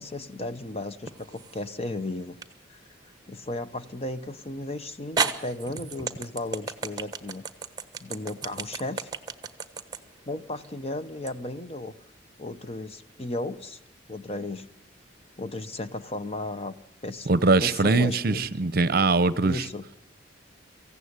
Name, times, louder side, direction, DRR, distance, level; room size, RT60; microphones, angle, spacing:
voice 1, 0.0-2.4 2.7-2.8 3.3-7.4 8.0-9.1 10.3-11.9 12.4-13.8 14.1-14.7 15.4-16.7 17.0-17.3 17.6-18.7 19.4-19.8, left 2 dB, 30° left, 0.9 m, -35 dB
sound 1, 1.1-1.7 2.4-2.5 4.4-4.5 5.2-11.4, right 5 dB, 20° right, 1.1 m, -32 dB
voice 2, 17.3-19.7, right 3 dB, 50° right, 0.8 m, -22 dB
24.5 x 15.5 x 9.6 m
head